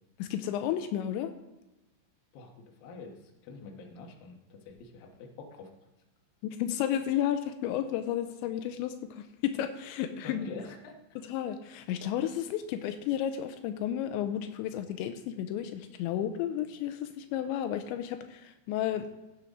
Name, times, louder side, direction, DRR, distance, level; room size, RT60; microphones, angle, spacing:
voice 1, 0.2-1.3 6.4-10.5 11.2-19.1, left 10 dB, 85° left, 8 dB, 2.9 m, -32 dB
voice 2, 2.3-5.7 10.2-11.0, left 4 dB, 65° left, 1 dB, 2.7 m, -45 dB
16.0 x 8.1 x 3.7 m, 1.0 s
omnidirectional pair, 5.2 m